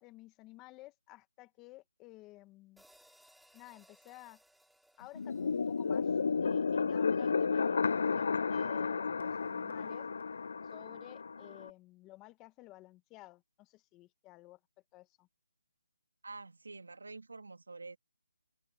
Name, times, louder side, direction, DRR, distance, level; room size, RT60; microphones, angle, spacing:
voice 1, 0.0-2.8 3.5-4.4 5.0-10.1 10.6-14.6 14.9-15.3, left 19 dB, 15° left, 1.8 m, -54 dB
sound 1, 2.8-7.1, right 1 dB, ahead, 4.2 m, -66 dB
sound 2, 5.2-11.7, left 5 dB, 60° left, 0.5 m, -32 dB
voice 2, 16.2-18.0, right 3 dB, 85° right, 3.2 m, -47 dB
hypercardioid pair, 160°, 0 cm